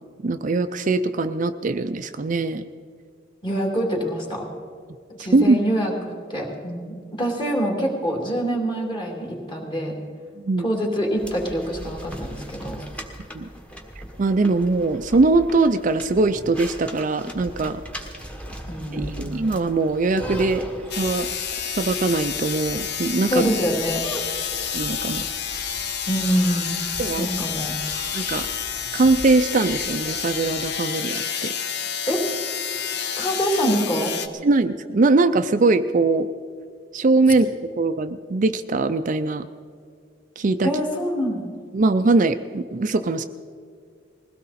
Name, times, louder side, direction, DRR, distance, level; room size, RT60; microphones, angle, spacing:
voice 1, 0.2-2.6 5.3-5.6 10.4-10.7 13.3-13.5 14.2-17.8 18.9-20.6 21.0-21.3 21.7-23.5 24.7-25.2 27.0-27.3 28.1-28.5 28.9-31.5 34.4-36.3 36.9-39.5 40.4-40.7 41.7-43.2, right 3 dB, 45° right, 9 dB, 0.5 m, -21 dB
voice 2, 3.4-4.5 5.2-9.9 10.6-12.8 18.7-19.3 23.3-24.0 26.1-26.8 27.1-27.7 32.1-32.2 33.2-34.1 40.6-41.5, equal, 25° left, 0 dB, 2.6 m, -25 dB
sound 1, 11.2-30.8, equal, 5° left, 1.3 m, -39 dB
sound 2, 20.9-34.3, left 7 dB, 60° left, 0.9 m, -29 dB
21.0 x 16.5 x 4.2 m, 2.2 s
head